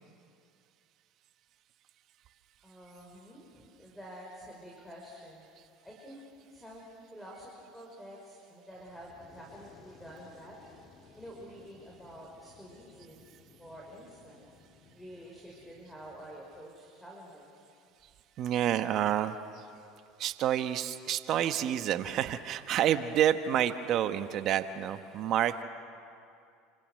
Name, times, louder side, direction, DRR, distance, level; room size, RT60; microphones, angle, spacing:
voice 1, 2.6-5.4 5.8-6.2 6.5-10.6 11.2-13.3 13.6-14.5 14.8-17.5, equal, 5° left, -2 dB, 5.6 m, -49 dB
Fire, 8.8-16.4, left 4 dB, 40° left, 3.4 m, -59 dB
voice 2, 18.4-19.6 20.2-25.6, right 10 dB, 50° right, 10 dB, 1.2 m, -29 dB
29.0 x 26.0 x 6.4 m, 2.5 s
hypercardioid pair, 75°, 0 cm